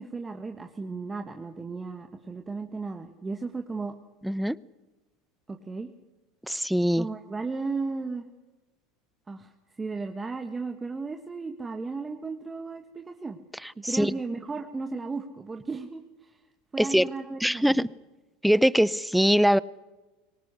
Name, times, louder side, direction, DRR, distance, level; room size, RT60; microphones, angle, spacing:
voice 1, 0.0-3.9 5.5-5.9 7.0-8.3 9.3-13.4 13.9-16.4 16.7-17.8, right 4 dB, 15° right, 6 dB, 1.6 m, -35 dB
voice 2, 4.2-4.6 6.5-7.1 13.8-14.1 16.8-17.0 17.4-17.9 18.4-19.6, equal, ahead, 20 dB, 0.7 m, -22 dB
24.0 x 18.5 x 8.2 m, 1.1 s
supercardioid pair, 105°, 0 cm